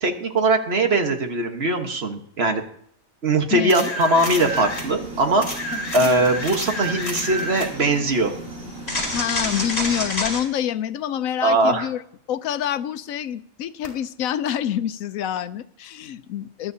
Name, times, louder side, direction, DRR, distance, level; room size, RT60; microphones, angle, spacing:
voice 1, 0.0-2.6 3.2-5.4 5.9-8.3 11.4-11.9, right 2 dB, 50° right, 5 dB, 1.5 m, -21 dB
voice 2, 3.5-3.9 5.7-6.1 9.1-12.0 12.3-16.7, left 10 dB, 85° left, 13 dB, 1.1 m, -27 dB
sound 1, 3.7-4.9 5.4-7.7 8.9-10.4 13.8-13.9, left 1 dB, 50° left, 4.3 m, -28 dB
sound 2, 4.1-10.1, right 2 dB, 85° right, 3.5 m, -37 dB
19.5 x 12.0 x 2.8 m, 0.66 s
omnidirectional pair, 1.4 m